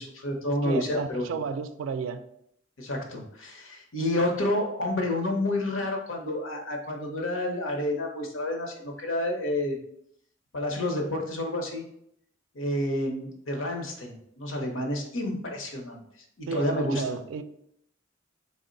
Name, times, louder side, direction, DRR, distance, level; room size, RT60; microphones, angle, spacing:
voice 1, 0.0-1.3 2.8-9.8 10.5-11.8 12.5-16.0 16.4-17.2, left 1 dB, 80° left, 0.8 m, -29 dB
voice 2, 0.6-2.2 16.5-17.4, right 5 dB, 75° right, 0.3 m, -32 dB
3.8 x 2.1 x 3.8 m
head